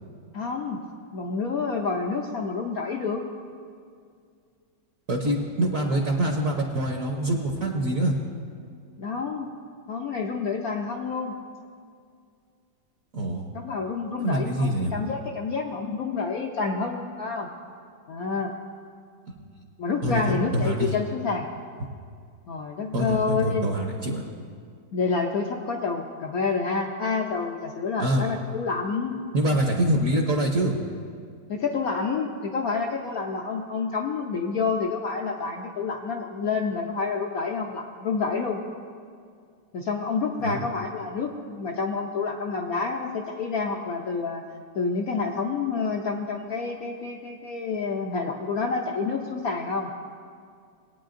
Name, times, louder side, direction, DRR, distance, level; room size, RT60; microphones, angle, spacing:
voice 1, 0.3-0.8 1.1-3.2 9.0-9.5 9.9-11.3 13.5-17.5 18.1-18.5 19.8-21.5 22.5-23.7 24.9-29.2 31.5-38.6 39.7-44.4 44.7-49.9, left 4 dB, 70° left, 1 dB, 0.8 m, -28 dB
voice 2, 5.1-8.2 13.1-13.4 14.2-14.9 20.0-20.9 22.9-24.2 28.0-28.2 29.3-30.8 40.4-40.6, right 1 dB, 50° right, 1 dB, 1.1 m, -25 dB
20.5 x 8.9 x 2.6 m, 2.2 s
omnidirectional pair, 2.2 m